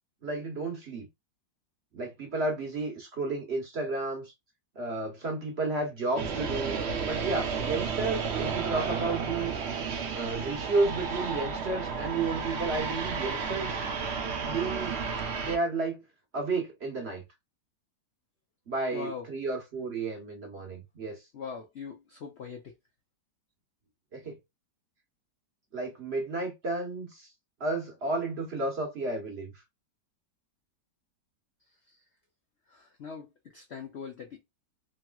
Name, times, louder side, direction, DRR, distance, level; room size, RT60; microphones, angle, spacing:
voice 1, 0.2-1.1 1.9-4.3 4.7-9.5 10.1-13.9 14.4-14.9 15.4-16.0 16.3-17.2 18.7-21.2 24.1-24.4 25.7-27.3 27.6-29.5, right 3 dB, 45° right, 1.0 m, -32 dB
sound 1, 6.2-15.6, right 5 dB, 65° right, 0.6 m, -32 dB
voice 2, 18.9-19.3 21.3-22.7 31.9-32.0 32.7-34.4, left 6 dB, 80° left, 0.5 m, -41 dB
3.1 x 2.9 x 2.2 m
omnidirectional pair, 1.9 m